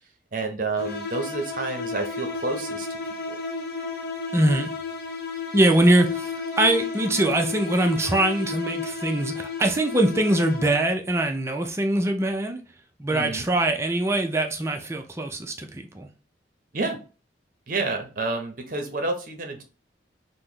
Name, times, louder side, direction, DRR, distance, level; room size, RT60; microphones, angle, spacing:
voice 1, 0.3-2.9 3.3-3.4 13.1-13.4 16.7-17.0 17.7-19.6, right 3 dB, 50° right, 0.7 m, -29 dB
sound 1, 0.8-11.0, left 4 dB, 60° left, 0.8 m, -33 dB
voice 2, 4.3-4.7 5.5-6.3 6.6-12.6 13.0-16.1, right 1 dB, 15° right, 0.4 m, -22 dB
3.0 x 2.1 x 3.6 m
head